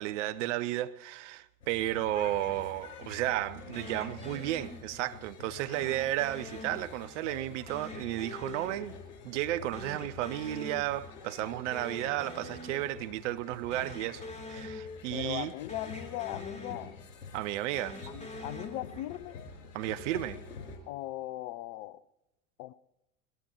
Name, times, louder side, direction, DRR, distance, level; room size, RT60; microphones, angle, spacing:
voice 1, 0.0-8.9 9.2-14.2 14.5-15.5 17.3-18.0 19.7-20.4, right 15 dB, 55° right, 0.8 m, -33 dB
sound 1, 1.6-20.8, left 5 dB, 75° left, 4.9 m, -48 dB
sound 2, 3.7-5.2 5.7-7.3 7.7-9.5 9.7-11.3 11.5-13.2 13.6-15.4 15.7-17.3 17.7-19.4, left 2 dB, 15° left, 3.2 m, -45 dB
voice 2, 15.1-17.0 18.1-19.4 20.9-22.0 22.6-22.7, left 16 dB, 40° left, 0.6 m, -38 dB
21.5 x 20.5 x 3.0 m
figure-of-eight pair, 85°, 45 cm